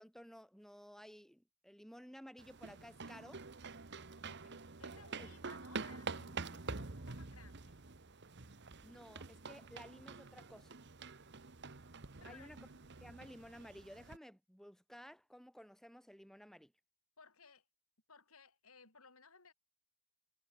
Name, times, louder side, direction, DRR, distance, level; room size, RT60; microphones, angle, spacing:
voice 1, 0.0-3.4 5.2-5.3 8.8-10.7 12.2-12.6 13.0-16.7, equal, ahead, 4.9 m, -55 dB
sound 1, 2.4-14.2, right 4 dB, 50° right, 1.3 m, -47 dB
voice 2, 4.2-7.8 12.2-12.5 17.2-17.6 18.1-19.5, left 4 dB, 75° left, 5.2 m, -61 dB
head